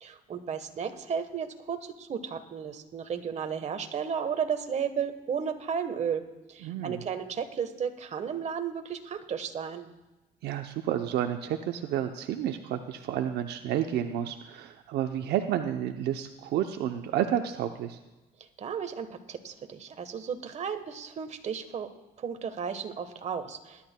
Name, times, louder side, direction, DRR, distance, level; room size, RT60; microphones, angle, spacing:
voice 1, 0.0-6.2 6.5-9.9 18.6-21.9 22.2-23.9, right 7 dB, 40° right, 7 dB, 1.2 m, -34 dB
voice 2, 6.6-7.0 10.4-18.0, right 10 dB, 75° right, 6 dB, 0.7 m, -30 dB
21.0 x 11.0 x 2.2 m, 1.1 s
cardioid pair, 110°, 17 cm